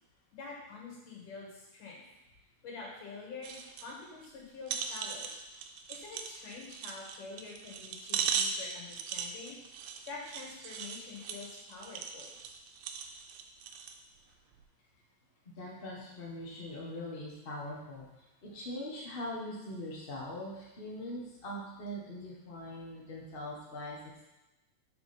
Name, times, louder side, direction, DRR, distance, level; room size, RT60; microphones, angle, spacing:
voice 1, 0.3-2.0 2.6-5.3 5.9-9.6 10.1-12.3, left 4 dB, 90° left, -3 dB, 3.3 m, -46 dB
sound 1, 3.4-3.9 4.2-4.3 4.7-14.0 14.5-14.6, right 7 dB, 85° right, 2.1 m, -39 dB
voice 2, 15.4-18.1 18.4-24.2, left 1 dB, 65° left, -4 dB, 0.5 m, -42 dB
5.1 x 4.9 x 5.1 m, 1.0 s
omnidirectional pair, 3.5 m